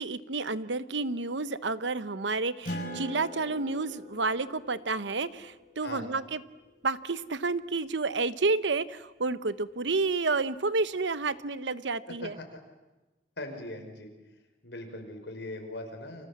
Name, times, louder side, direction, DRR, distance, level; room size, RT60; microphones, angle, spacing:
voice 1, 0.0-6.4 6.8-12.4, right 3 dB, 85° right, 14 dB, 1.0 m, -30 dB
Acoustic guitar, 2.6-7.6, equal, 45° left, 5.8 m, -43 dB
voice 2, 13.4-14.1 14.6-16.3, left 1 dB, 75° left, 4 dB, 5.4 m, -40 dB
30.0 x 25.5 x 7.4 m, 1.1 s
head